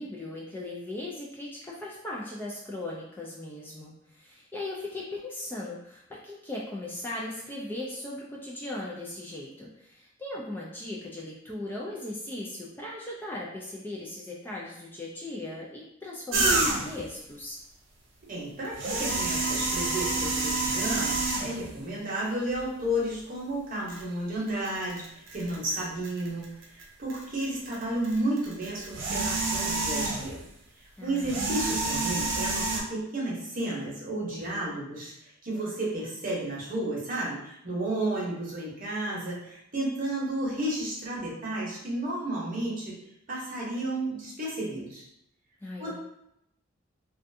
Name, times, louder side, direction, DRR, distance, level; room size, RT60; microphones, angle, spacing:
voice 1, 0.0-17.6 31.0-31.7 45.6-45.9, left 1 dB, 10° left, -4 dB, 0.3 m, -38 dB
sound 1, 16.3-17.1 18.6-21.7 22.5-22.6 23.9-24.0 24.5-26.8 27.1-30.4 31.2-32.8, right 3 dB, 75° right, 0.6 m, -28 dB
voice 2, 18.3-30.4 30.8-43.0 43.3-45.0 45.8-45.9, right 1 dB, 45° right, -5 dB, 0.8 m, -32 dB
2.5 x 2.2 x 2.6 m, 0.79 s
head